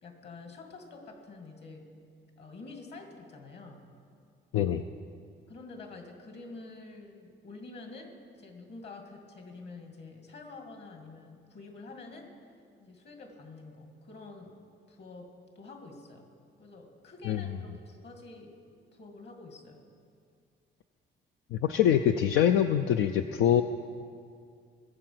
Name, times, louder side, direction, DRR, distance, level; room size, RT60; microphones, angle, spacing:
voice 1, 0.0-2.0 2.4-3.9 5.5-12.3 12.8-14.6 14.9-16.3 16.6-18.6 18.9-19.8, left 3 dB, 60° left, 3 dB, 2.5 m, -48 dB
voice 2, 4.5-4.9 17.3-17.4 21.5-23.6, left 9 dB, 90° left, 7 dB, 0.5 m, -24 dB
20.0 x 7.8 x 5.9 m, 2.2 s
cardioid pair, 90°, 20 cm